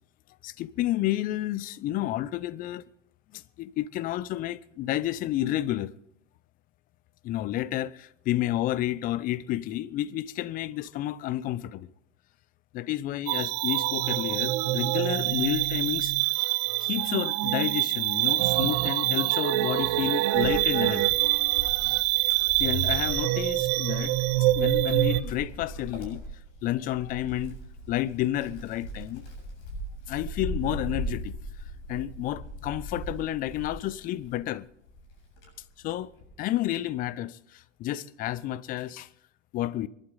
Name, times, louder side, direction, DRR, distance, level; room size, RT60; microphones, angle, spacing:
voice 1, 0.4-2.8 3.3-5.9 7.2-11.9 12.7-16.3 16.8-21.2 22.2-24.1 24.5-26.2 26.6-27.6 27.9-29.2 30.1-31.3 31.9-34.7 35.8-36.1 36.4-39.1 39.5-39.9, left 13 dB, 25° left, 0.6 m, -30 dB
sound 1, 13.3-25.2, right 17 dB, 35° right, 0.7 m, -25 dB
Wind, 20.3-34.4 34.9-36.4, right 1 dB, 50° left, 7.7 m, -39 dB
25.5 x 11.5 x 3.9 m
hypercardioid pair, 105°, 37 cm